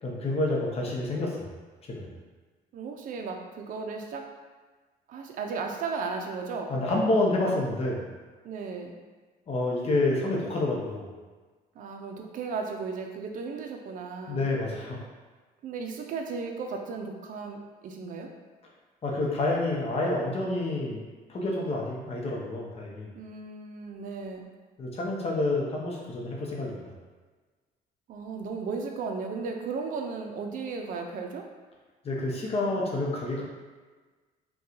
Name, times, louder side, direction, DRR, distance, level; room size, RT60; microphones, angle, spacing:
voice 1, 0.0-1.5 1.9-2.1 6.7-8.1 9.5-11.1 14.3-15.0 19.0-21.0 21.3-23.1 24.8-26.9 32.0-33.4, left 2 dB, 35° left, -2 dB, 0.8 m, -28 dB
voice 2, 2.7-4.2 5.1-6.7 8.4-9.0 11.8-14.4 15.6-18.3 23.1-24.5 28.1-31.4, right 4 dB, 50° right, 3 dB, 0.5 m, -35 dB
2.7 x 2.3 x 3.7 m, 1.3 s
cardioid pair, 110°, 17 cm